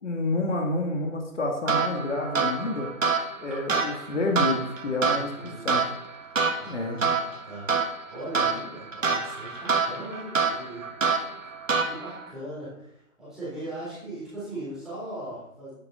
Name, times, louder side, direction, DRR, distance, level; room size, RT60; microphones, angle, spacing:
voice 1, 0.0-2.9 3.4-5.9 6.7-7.0, left 2 dB, 55° left, 1 dB, 2.3 m, -29 dB
sound 1, 1.7-12.3, right 5 dB, 60° right, 1.9 m, -27 dB
voice 2, 5.1-5.8 6.3-10.9 11.8-15.7, right 1 dB, ahead, -12 dB, 3.3 m, -39 dB
11.5 x 10.5 x 3.9 m, 0.77 s
hypercardioid pair, 170°, 43 cm